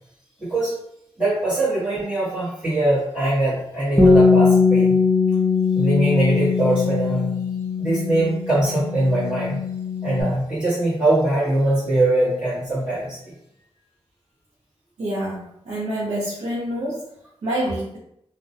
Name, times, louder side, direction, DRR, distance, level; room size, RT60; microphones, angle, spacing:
voice 1, 0.4-0.7 1.2-5.0 5.7-7.3 7.8-9.6 10.0-13.2, right 1 dB, 10° right, -14 dB, 1.0 m, -22 dB
Bass guitar, 4.0-10.2, left 4 dB, 5° left, 0.3 m, -20 dB
voice 2, 15.0-17.1 17.4-18.0, right 1 dB, 85° right, -7 dB, 0.5 m, -27 dB
2.3 x 2.0 x 2.6 m, 0.74 s
wide cardioid pair, 140°, 11 cm